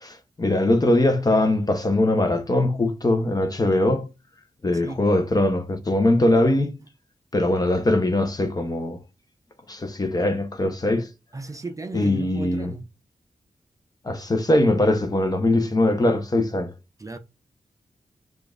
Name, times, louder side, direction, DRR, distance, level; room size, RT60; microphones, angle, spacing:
voice 1, 0.0-4.1 4.6-6.7 7.3-9.0 9.7-11.1 11.9-12.7 14.0-16.7, left 1 dB, 30° left, 0.8 m, -21 dB
voice 2, 11.3-12.9 17.0-17.2, right 2 dB, 25° right, 0.5 m, -35 dB
6.7 x 2.5 x 2.4 m
wide cardioid pair, 90°, 13 cm